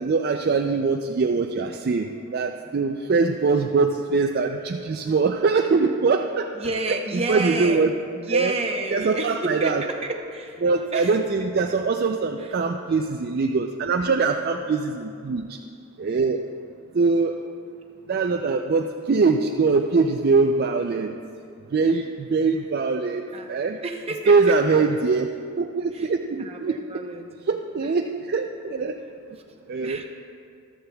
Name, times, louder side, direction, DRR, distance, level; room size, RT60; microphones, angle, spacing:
voice 1, 0.0-6.5 7.1-7.9 8.3-8.5 8.9-9.8 10.6-15.6 16.0-16.4 16.9-17.3 18.1-21.2 21.7-23.8 24.3-25.3 25.6-26.8 27.5-28.9 29.7-30.0, right 4 dB, 45° right, 4 dB, 0.3 m, -22 dB
voice 2, 6.5-10.6 10.9-11.2 12.4-12.5 23.3-23.6 23.8-24.8 25.9-26.1 26.4-27.3 27.8-27.9 29.8-30.0, right 2 dB, 25° right, 3 dB, 0.8 m, -30 dB
14.5 x 12.5 x 2.3 m, 2.4 s
head